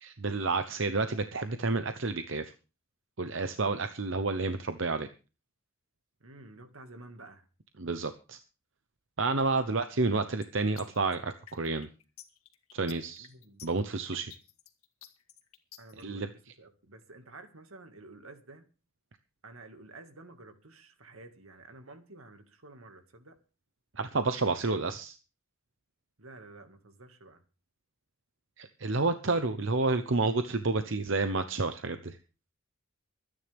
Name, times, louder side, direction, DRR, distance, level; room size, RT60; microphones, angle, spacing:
voice 1, 0.0-2.5 3.2-5.1 7.8-8.4 9.2-11.9 12.7-13.3 13.6-14.3 16.0-16.3 24.0-25.2 28.6-32.2, right 3 dB, 60° right, 0.9 m, -30 dB
voice 2, 6.2-7.4 13.2-13.6 15.8-18.7 19.4-23.4 26.2-27.4, right 2 dB, 80° right, 2.1 m, -51 dB
sound 1, 10.4-16.0, left 11 dB, 85° left, 1.9 m, -52 dB
24.0 x 10.0 x 3.5 m
head